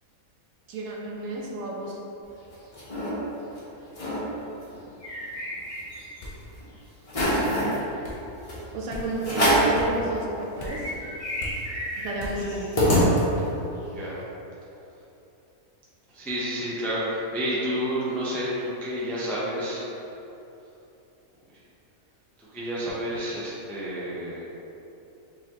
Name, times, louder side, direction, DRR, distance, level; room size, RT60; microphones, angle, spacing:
voice 1, 0.7-2.0 8.7-10.3 10.6-10.9 12.0-12.8, right 2 dB, 70° right, -2 dB, 1.0 m, -31 dB
sound 1, 2.3-3.1 3.6-3.7 3.9-4.2 4.6-6.2 6.6-6.7 7.1-7.8 8.5-8.6 9.2-9.8 10.3-10.4 10.6-13.6, equal, 30° left, 0.9 m, -26 dB
sound 2, 6.2-6.4 7.1-7.4 8.0-8.2 8.9-9.1 9.7-9.9 10.6-10.9 11.4-11.6 12.2-12.5 13.0-13.1, left 1 dB, 75° left, 1.3 m, -37 dB
voice 2, 13.9-14.2 16.1-19.8 22.4-24.4, equal, ahead, -8 dB, 0.3 m, -30 dB
4.7 x 3.1 x 2.9 m, 2.9 s
omnidirectional pair, 1.5 m